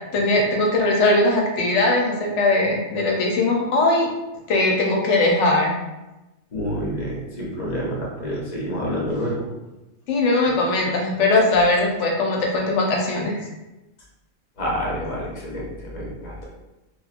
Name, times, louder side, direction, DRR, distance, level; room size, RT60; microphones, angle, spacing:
voice 1, 0.1-4.1 4.5-5.7 10.1-13.4, left 2 dB, 65° left, -1 dB, 0.9 m, -20 dB
voice 2, 6.5-9.4 14.6-16.4, equal, 40° left, -4 dB, 0.7 m, -28 dB
2.9 x 2.4 x 2.4 m, 1.0 s
omnidirectional pair, 1.4 m